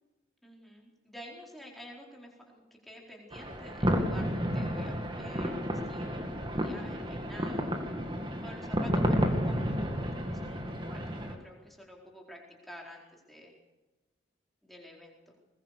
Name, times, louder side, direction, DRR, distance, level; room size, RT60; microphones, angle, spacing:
voice 1, 0.4-7.7 8.4-13.6 14.6-15.3, equal, ahead, -1 dB, 4.4 m, -50 dB
sound 1, 3.3-11.3, equal, 25° right, 2.3 m, -31 dB
22.0 x 21.5 x 6.8 m, 1.1 s
head